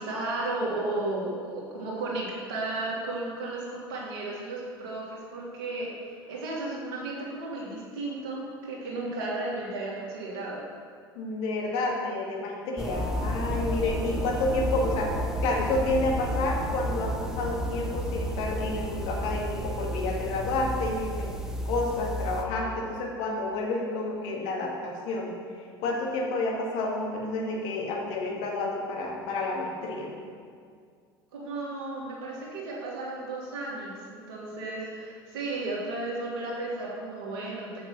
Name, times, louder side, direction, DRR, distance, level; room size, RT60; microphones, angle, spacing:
voice 1, 0.0-10.6 31.3-37.8, right 2 dB, 60° right, -4 dB, 2.8 m, -34 dB
voice 2, 11.2-15.1 15.4-21.3 21.7-25.3 25.8-30.1, left 2 dB, 55° left, -2 dB, 2.1 m, -30 dB
sound 1, 12.8-22.4, equal, 5° right, 1.1 m, -32 dB
7.4 x 6.9 x 6.8 m, 2.1 s
figure-of-eight pair, 70°, 13 cm